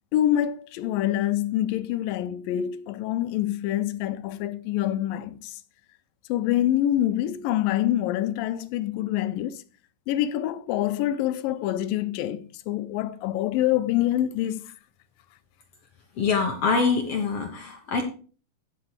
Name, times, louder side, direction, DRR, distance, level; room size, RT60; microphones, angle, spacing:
voice 1, 0.1-5.6 6.3-9.6 10.1-14.7, left 12 dB, 85° left, 2.4 m, -26 dB
voice 2, 16.2-18.0, left 4 dB, 60° left, 1.8 m, -24 dB
15.5 x 6.8 x 3.3 m
omnidirectional pair, 4.0 m